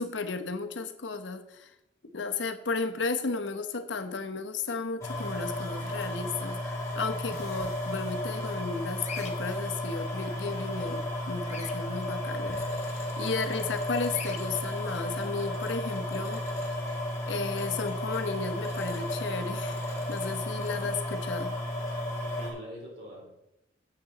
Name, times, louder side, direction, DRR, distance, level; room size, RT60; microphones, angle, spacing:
voice 1, 0.0-1.7 2.1-16.4 17.3-19.8 20.1-21.5, left 4 dB, 75° left, 8 dB, 0.9 m, -34 dB
sound 1, 5.0-22.5, left 1 dB, 15° left, 2.4 m, -33 dB
Bird vocalization bird call bird song, 9.0-9.3 11.4-11.7 14.1-14.4, left 6 dB, 40° left, 1.0 m, -40 dB
voice 2, 22.2-23.3, equal, 65° right, -3 dB, 4.0 m, -45 dB
10.0 x 7.7 x 3.9 m, 0.89 s
head